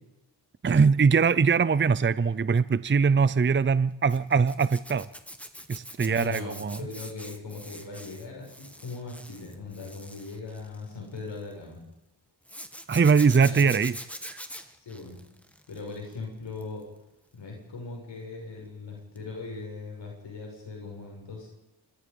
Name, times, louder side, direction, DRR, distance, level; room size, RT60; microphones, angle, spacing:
voice 1, 0.6-5.1 5.7-6.8 12.9-13.9 14.2-14.4, right 5 dB, 25° right, 17 dB, 0.7 m, -22 dB
Zipper (clothing), 4.1-11.5 12.5-16.1 16.5-16.8 19.2-19.3 19.6-19.7, equal, 5° left, 2.3 m, -44 dB
voice 2, 6.1-11.8 13.4-13.8 14.8-15.2 15.7-16.8 17.3-21.5, left 3 dB, 85° left, -1 dB, 6.4 m, -39 dB
26.5 x 21.5 x 5.4 m, 0.94 s
cardioid pair, 55°, 43 cm